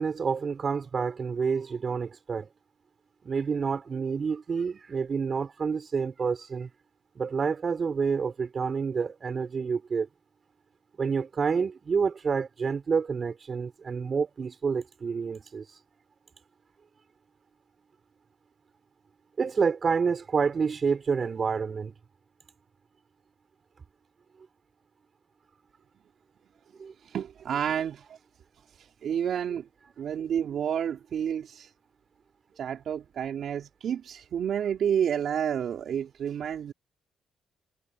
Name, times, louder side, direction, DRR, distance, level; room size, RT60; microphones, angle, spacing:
voice 1, 0.0-2.5 3.2-6.7 7.2-10.1 11.0-15.7 19.4-21.9 26.8-26.9, right 5 dB, 40° right, 5.7 m, -28 dB
voice 2, 27.1-28.2 28.8-29.7 30.0-31.7 32.6-36.7, right 8 dB, 65° right, 3.4 m, -30 dB
cardioid pair, 90°, 0 cm